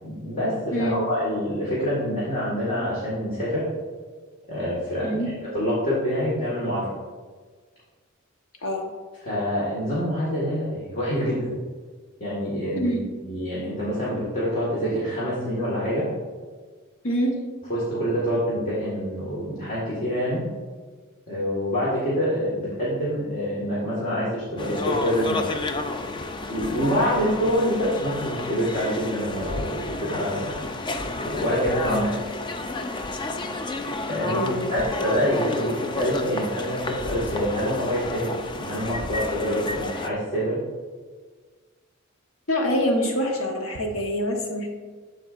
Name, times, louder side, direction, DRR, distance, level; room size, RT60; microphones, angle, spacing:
voice 1, 0.0-3.6 4.5-6.9 9.2-11.5 12.2-12.9 13.2-16.1 17.7-20.4 21.3-25.4 26.5-30.5 30.9-32.1 34.1-40.6, equal, 40° left, -9 dB, 1.7 m, -26 dB
voice 2, 0.7-1.1 5.0-5.3 8.6-8.9 12.8-13.0 17.0-17.4 31.9-32.1 33.4-33.5 34.3-34.7 42.5-44.7, equal, 80° left, 1 dB, 1.1 m, -25 dB
sound 1, 24.6-40.1, left 2 dB, 25° left, 0.4 m, -31 dB
13.0 x 4.4 x 2.5 m, 1.5 s
head